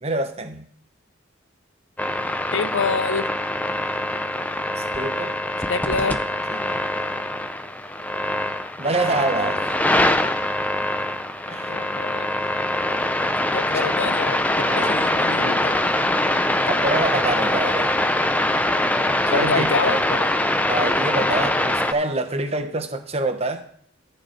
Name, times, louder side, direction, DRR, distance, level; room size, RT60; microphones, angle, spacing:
voice 1, 0.0-0.7 4.8-5.4 5.9-6.1 6.5-6.8 8.6-9.8 11.5-11.8 13.8-13.9 14.7-15.1 16.7-17.9 19.3-20.0 20.7-23.6, right 2 dB, 30° right, 1.1 m, -26 dB
sound 1, 2.0-21.9, left 1 dB, 10° left, 0.5 m, -23 dB
voice 2, 2.5-3.3 5.7-6.2 9.1-9.5 11.7-12.3 13.5-15.7 19.3-20.3 21.3-21.5, left 5 dB, 75° left, 0.6 m, -27 dB
15.0 x 5.3 x 4.5 m
head